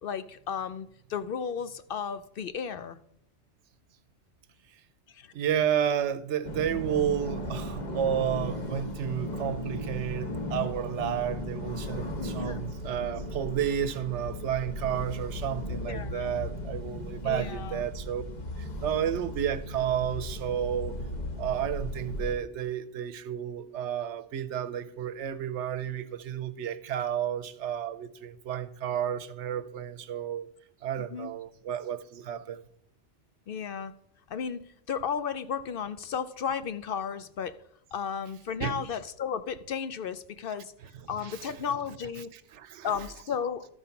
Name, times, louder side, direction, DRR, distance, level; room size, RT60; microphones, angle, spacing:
voice 1, 0.0-3.0 5.1-5.3 12.4-12.7 15.8-16.3 17.2-17.8 31.1-31.3 33.5-33.9 34.3-37.5 37.9-40.7 41.1-42.3 42.8-43.7, left 7 dB, 60° left, 0.6 m, -34 dB
voice 2, 5.3-18.2 18.6-21.0 21.4-30.5 30.8-32.6 38.6-38.8 41.2-41.6 42.3-42.9, right 9 dB, 80° right, 1.0 m, -31 dB
sound 1, 6.4-22.3, left 1 dB, 40° left, 1.2 m, -36 dB
12.5 x 5.4 x 5.7 m
omnidirectional pair, 1.2 m